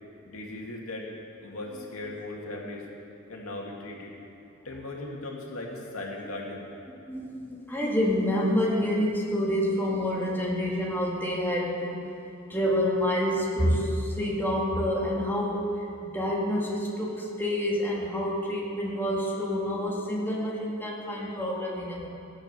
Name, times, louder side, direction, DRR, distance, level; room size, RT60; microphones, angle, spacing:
voice 1, 0.3-1.1 1.4-2.9 3.3-4.1 4.6-6.7, left 2 dB, 75° left, -1 dB, 2.3 m, -38 dB
voice 2, 7.1-12.0 12.5-22.1, equal, 10° left, -4 dB, 2.2 m, -28 dB
15.5 x 9.0 x 7.0 m, 2.5 s
head